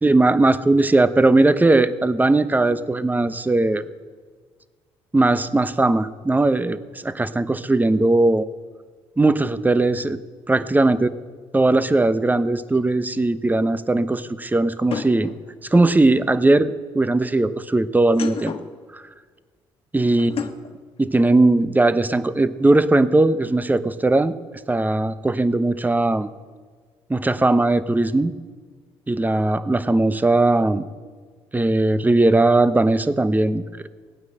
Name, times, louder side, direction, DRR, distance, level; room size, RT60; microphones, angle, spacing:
voice 1, 0.0-3.8 5.1-8.5 9.2-10.2 10.5-11.1 11.5-15.3 15.7-18.5 18.9-19.0 19.9-20.5 21.0-24.3 24.7-26.3 27.1-28.3 29.1-30.9 31.5-33.6, right 2 dB, 15° right, 14 dB, 0.9 m, -19 dB
sound 1, 12.8-12.9 14.9-16.0 18.0-18.8 20.2-20.7, left 6 dB, 45° left, 1.5 m, -31 dB
18.0 x 9.5 x 7.8 m, 1.5 s
hypercardioid pair, 55°, 13 cm